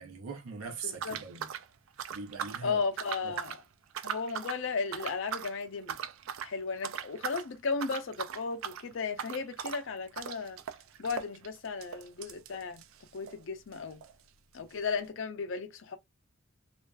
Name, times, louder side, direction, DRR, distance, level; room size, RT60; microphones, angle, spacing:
voice 1, 0.0-1.5 2.1-2.8 3.2-3.4, right 5 dB, 85° right, 0.7 m, -41 dB
voice 2, 0.8-1.2 2.6-3.6 4.0-6.0 6.4-10.6 11.0-12.8 13.1-14.0 14.5-16.0, left 5 dB, 60° left, 0.5 m, -35 dB
sound 1, 1.0-2.7 3.0-3.6 3.9-4.6 4.9-5.5 5.9-6.5 6.8-7.5 7.7-13.4 13.7-13.8 14.0-14.1 14.8-14.9, right 8 dB, 70° right, 0.3 m, -39 dB
2.4 x 2.3 x 2.3 m
head